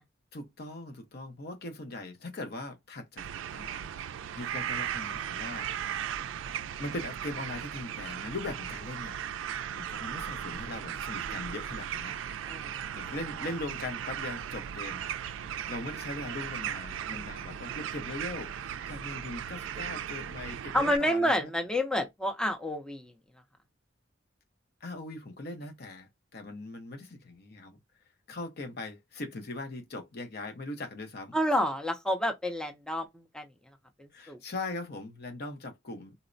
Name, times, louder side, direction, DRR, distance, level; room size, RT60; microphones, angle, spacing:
voice 1, 0.3-5.7 6.8-9.2 9.7-12.2 12.9-15.0 15.4-21.5 24.8-27.8 28.3-31.4 34.1-36.1, left 2 dB, 55° left, 0.7 m, -40 dB
sound 1, 3.2-21.0, right 9 dB, 90° right, 0.3 m, -37 dB
voice 2, 20.7-23.1 31.3-33.1 33.3-33.5 34.0-34.4, equal, 5° left, 0.5 m, -29 dB
4.0 x 2.1 x 2.5 m
head